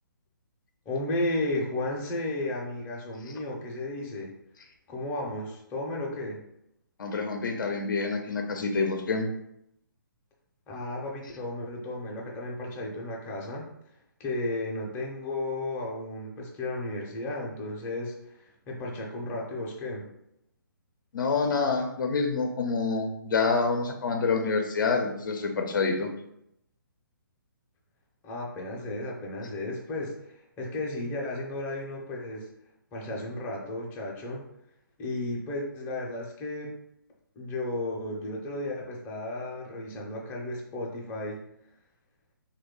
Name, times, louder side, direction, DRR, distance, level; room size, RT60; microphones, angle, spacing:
voice 1, 0.9-4.3 4.9-6.4 10.7-13.7 14.2-20.1 28.2-32.5 32.9-34.4 35.0-36.7 37.4-41.4, left 2 dB, 15° left, -2 dB, 0.5 m, -34 dB
voice 2, 7.0-9.3 21.1-26.1, left 4 dB, 65° left, 4 dB, 0.5 m, -27 dB
3.0 x 2.2 x 3.6 m, 0.78 s
hypercardioid pair, 145°, 11 cm